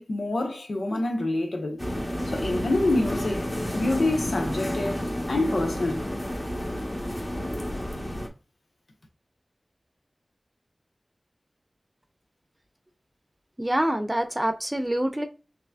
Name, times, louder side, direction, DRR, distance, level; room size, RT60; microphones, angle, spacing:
voice 1, 0.0-1.8 2.3-6.1, left 2 dB, 90° left, 1.1 m, -27 dB
sound 1, 1.8-8.3, equal, 25° left, 1.2 m, -30 dB
voice 2, 13.6-15.2, right 1 dB, 20° right, 0.7 m, -26 dB
5.9 x 3.1 x 2.4 m
wide cardioid pair, 55°, 0 cm